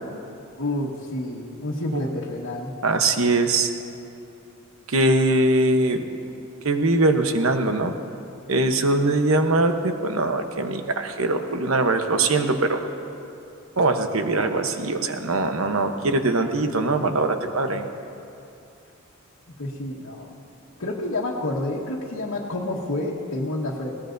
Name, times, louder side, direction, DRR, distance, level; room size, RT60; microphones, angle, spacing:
voice 1, 0.6-2.7 19.6-20.4 20.8-24.0, left 1 dB, 80° left, -5 dB, 1.4 m, -29 dB
voice 2, 2.8-3.7 4.9-6.0 6.6-7.9 8.5-12.8 13.8-17.9, right 2 dB, 75° right, 6 dB, 0.9 m, -22 dB
20.5 x 18.0 x 2.6 m, 2.6 s
head